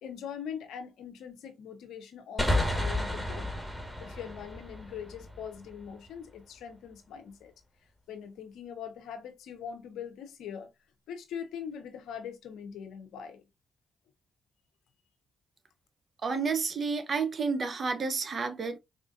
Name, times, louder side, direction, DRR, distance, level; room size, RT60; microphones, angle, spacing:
voice 1, 0.0-3.5 4.0-7.5 8.1-10.7 11.1-13.4, left 8 dB, 75° left, 0.7 m, -42 dB
sound 1, 2.4-5.9, left 1 dB, 5° right, 1.7 m, -32 dB
voice 2, 16.2-18.8, right 4 dB, 55° right, 0.7 m, -30 dB
4.2 x 2.5 x 2.3 m
hypercardioid pair, 45°, 0 cm